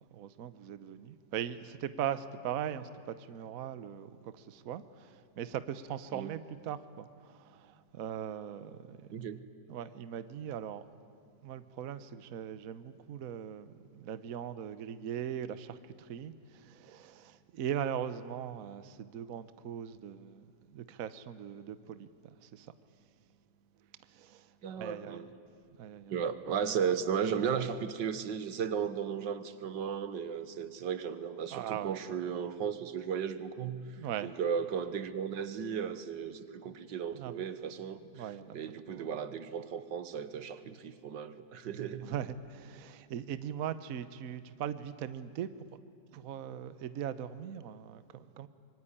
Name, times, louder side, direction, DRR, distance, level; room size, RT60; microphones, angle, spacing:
voice 1, 0.1-9.0 9.7-10.8 11.4-20.4 20.7-22.1 22.4-22.7 24.1-24.5 24.8-25.2 25.8-26.2 31.5-32.0 34.0-34.3 37.1-37.4 38.1-38.6 38.9-39.1 42.0-45.5 46.1-48.5, right 9 dB, 60° right, 1.2 m, -40 dB
voice 2, 9.1-9.4 24.6-25.3 26.1-33.9 34.2-38.3 38.5-42.1, right 7 dB, 85° right, 1.8 m, -35 dB
25.5 x 23.5 x 10.0 m
omnidirectional pair, 1.9 m